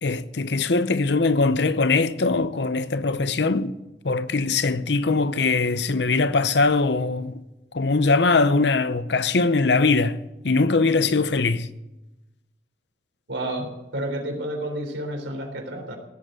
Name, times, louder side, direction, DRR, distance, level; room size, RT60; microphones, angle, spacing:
voice 1, 0.0-3.7 4.0-7.4 7.7-10.2 10.4-11.7, left 3 dB, 70° left, 0.7 m, -21 dB
voice 2, 13.3-16.0, right 1 dB, 90° right, 3.7 m, -30 dB
17.0 x 8.0 x 8.9 m
head